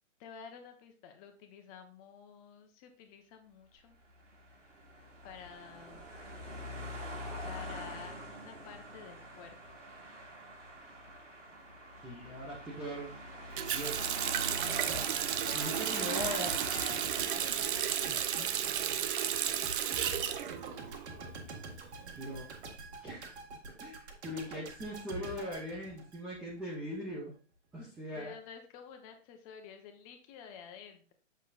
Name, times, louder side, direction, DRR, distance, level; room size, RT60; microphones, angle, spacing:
voice 1, 0.2-4.0 5.2-6.1 7.4-9.6 15.4-19.0 28.1-31.1, left 7 dB, 30° left, 6 dB, 1.2 m, -50 dB
sound 1, 4.0-19.4, right 1 dB, 85° right, 2.7 m, -45 dB
voice 2, 12.0-13.1 13.7-14.2 15.5-16.5 22.1-22.5 23.0-23.2 23.8-24.0 24.2-27.3 27.7-28.3, equal, ahead, -6 dB, 0.4 m, -40 dB
Water tap faucet, 13.6-21.3 21.6-22.7, right 10 dB, 45° right, 0.6 m, -33 dB
sound 2, 14.6-26.6 26.9-27.1, right 2 dB, 60° right, 1.9 m, -46 dB
7.2 x 6.6 x 2.6 m, 0.38 s
hypercardioid pair, 135°, 37 cm